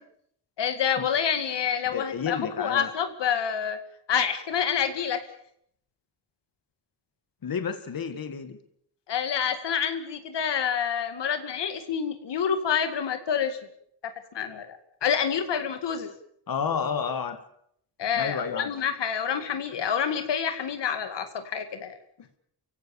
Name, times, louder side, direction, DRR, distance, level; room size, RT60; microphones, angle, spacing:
voice 1, 0.6-3.8 4.1-5.2 9.1-13.6 14.3-16.1 18.0-22.0, left 7 dB, 85° left, 8 dB, 2.3 m, -27 dB
voice 2, 1.9-2.9 7.4-8.6 16.5-17.4 18.1-18.7, left 6 dB, 55° left, 9 dB, 2.1 m, -30 dB
29.0 x 16.5 x 7.2 m, 0.69 s
wide cardioid pair, 135°, 41 cm